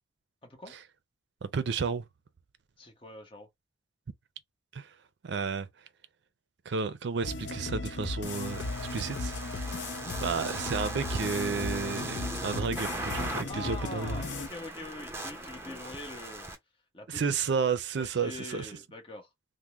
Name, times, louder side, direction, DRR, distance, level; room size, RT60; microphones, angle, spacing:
voice 1, 0.4-0.8 2.8-3.5 9.9-10.2 13.5-16.5 16.9-17.5 18.0-19.3, left 2 dB, 30° left, 0.9 m, -44 dB
voice 2, 1.4-2.0 4.7-4.9 5.2-5.7 6.7-8.6 8.9-9.3 10.2-14.2 17.1-18.7, right 5 dB, 65° right, 0.4 m, -31 dB
sound 1, 7.2-14.5, left 3 dB, 70° left, 0.5 m, -36 dB
sound 2, 8.2-16.6, right 1 dB, 15° right, 0.6 m, -39 dB
3.5 x 2.1 x 2.9 m
head